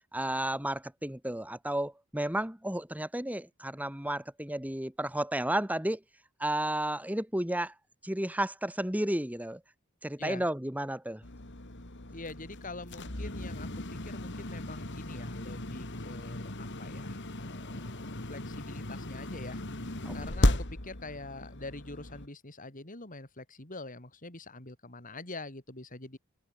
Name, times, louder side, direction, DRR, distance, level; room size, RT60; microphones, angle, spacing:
voice 1, 0.1-6.0 6.4-7.7 8.0-9.6 10.0-11.2 20.1-20.2, right 1 dB, 5° right, 1.7 m, -32 dB
sound 1, 11.2-22.3, left 1 dB, 55° left, 3.1 m, -35 dB
voice 2, 12.1-17.9 18.3-19.6 20.1-26.2, left 2 dB, 40° left, 4.0 m, -45 dB
head